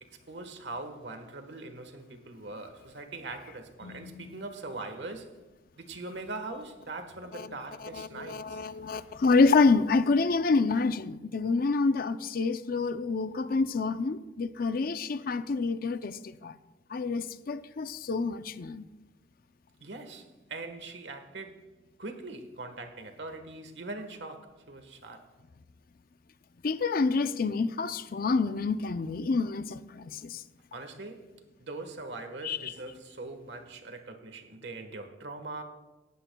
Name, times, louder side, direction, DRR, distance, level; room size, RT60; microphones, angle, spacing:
voice 1, 0.0-5.4 5.8-8.7 19.8-21.7 22.0-25.3 30.7-31.3 31.6-35.6, right 2 dB, 65° right, 1.4 m, -42 dB
voice 2, 3.8-4.2 8.0-16.5 16.9-18.8 26.6-30.4 32.4-32.6, left 4 dB, 50° left, 0.5 m, -27 dB
18.5 x 15.0 x 2.3 m
head